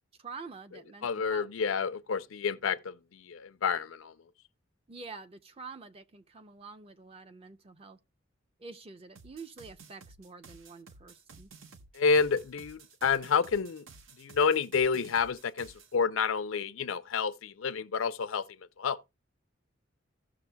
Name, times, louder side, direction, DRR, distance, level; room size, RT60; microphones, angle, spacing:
voice 1, 0.2-1.5 4.9-8.0 8.6-11.5, right 4 dB, 30° right, 0.5 m, -47 dB
voice 2, 1.0-4.1 11.9-13.9 14.2-18.4 18.8-19.0, left 5 dB, 85° left, 0.5 m, -29 dB
sound 1, 9.2-15.9, right 4 dB, 80° right, 0.8 m, -53 dB
15.5 x 6.2 x 2.2 m
head